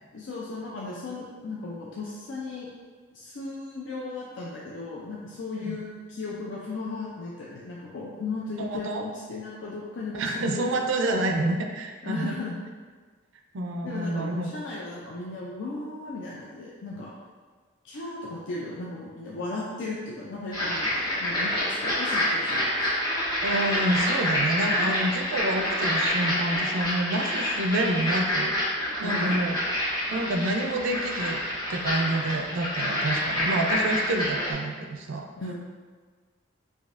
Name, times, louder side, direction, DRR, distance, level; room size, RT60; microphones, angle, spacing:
voice 1, 0.1-2.7 3.1-10.7 12.0-12.6 13.8-17.1 17.8-22.7 29.0-29.5 35.4-35.5, left 3 dB, 65° left, -4 dB, 0.4 m, -36 dB
voice 2, 8.6-9.0 10.1-12.4 13.5-14.5 23.4-28.6 29.0-29.6 30.1-31.4 31.7-35.3, right 1 dB, 75° right, 3 dB, 0.4 m, -28 dB
sound 1, 20.5-34.5, left 1 dB, 20° left, 0.9 m, -27 dB
5.0 x 2.6 x 2.5 m, 1.5 s
head